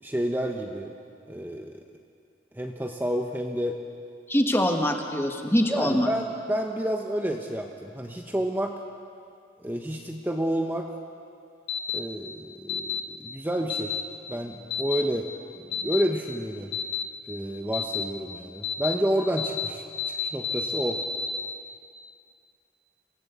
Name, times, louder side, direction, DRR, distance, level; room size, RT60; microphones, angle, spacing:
voice 1, 0.0-0.9 1.3-1.8 2.5-3.8 5.7-8.7 9.6-10.8 11.9-14.0 14.3-15.3 15.6-16.7 17.3-19.8 20.3-21.0, equal, 10° right, 2 dB, 1.1 m, -29 dB
voice 2, 4.3-6.1, equal, 15° left, 3 dB, 1.6 m, -23 dB
sound 1, 11.7-12.0 12.7-13.0 13.7-14.0 14.7-15.0 15.7-16.0 16.7-17.0 17.7-18.0 18.6-18.9 19.4-19.7 20.0-21.4, left 7 dB, 80° left, 2.2 m, -29 dB
26.0 x 16.5 x 8.2 m, 2.4 s
head